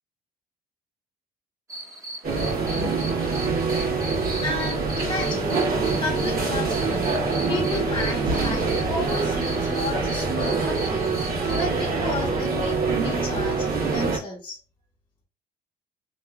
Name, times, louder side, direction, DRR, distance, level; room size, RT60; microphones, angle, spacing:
sound 1, 1.7-11.7, right 1 dB, 20° right, 0.9 m, -39 dB
sound 2, 2.2-14.2, right 4 dB, 60° right, 1.4 m, -25 dB
voice 1, 4.4-5.7 6.0-7.1 7.5-11.0 11.5-14.6, left 3 dB, 30° left, -3 dB, 0.9 m, -32 dB
3.0 x 2.1 x 2.4 m, 0.35 s
cardioid pair, 110°, 17 cm